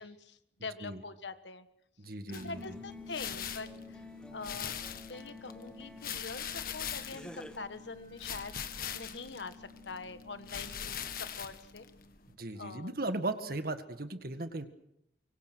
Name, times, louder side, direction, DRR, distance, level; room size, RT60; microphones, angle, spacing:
voice 1, 0.0-1.7 2.3-4.0 4.3-4.7 5.1-11.9 12.5-12.9, left 4 dB, 80° left, 11 dB, 1.5 m, -44 dB
voice 2, 2.0-2.6 12.4-14.7, right 2 dB, 55° right, 9 dB, 1.9 m, -37 dB
sound 1, 2.3-12.3, left 8 dB, 55° left, 1.6 m, -42 dB
sound 2, 2.3-11.5, left 4 dB, 85° right, 2.8 m, -52 dB
sound 3, 2.5-6.6 7.1-7.6, equal, 5° left, 1.3 m, -52 dB
24.5 x 24.0 x 6.3 m, 0.81 s
head